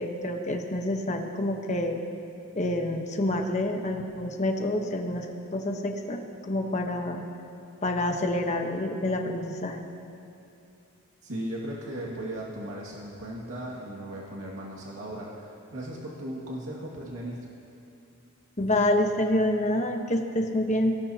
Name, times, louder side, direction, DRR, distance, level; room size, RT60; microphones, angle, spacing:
voice 1, 0.0-2.0 2.5-5.3 5.5-7.2 7.8-9.8 18.6-21.0, left 1 dB, 35° left, 3 dB, 1.2 m, -27 dB
voice 2, 11.2-17.4, right 1 dB, 85° right, -4 dB, 2.2 m, -37 dB
23.5 x 18.0 x 2.9 m, 2.7 s
head